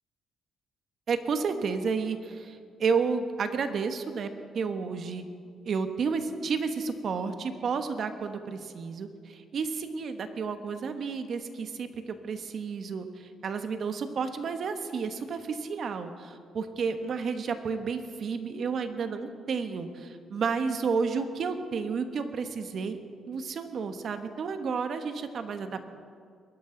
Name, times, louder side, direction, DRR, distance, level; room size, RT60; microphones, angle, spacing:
voice 1, 1.1-5.2 5.6-23.0 23.3-25.8, right 5 dB, 55° right, 8 dB, 1.2 m, -31 dB
22.0 x 12.0 x 3.9 m, 2.2 s
cardioid pair, 90°, 0 cm